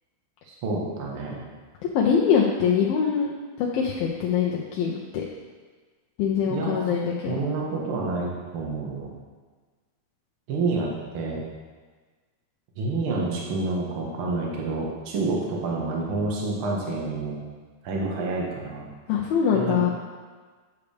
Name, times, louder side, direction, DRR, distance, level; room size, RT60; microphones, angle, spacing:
voice 1, 0.5-1.4 6.5-6.8 7.3-9.1 10.5-10.9 11.1-11.4 12.8-17.4 17.8-18.9 19.5-19.9, right 3 dB, 65° right, -2 dB, 1.3 m, -28 dB
voice 2, 1.9-3.3 3.6-5.2 6.2-7.4 19.1-19.9, left 7 dB, 80° left, -3 dB, 2.4 m, -23 dB
8.4 x 8.1 x 3.4 m, 1.4 s
omnidirectional pair, 4.4 m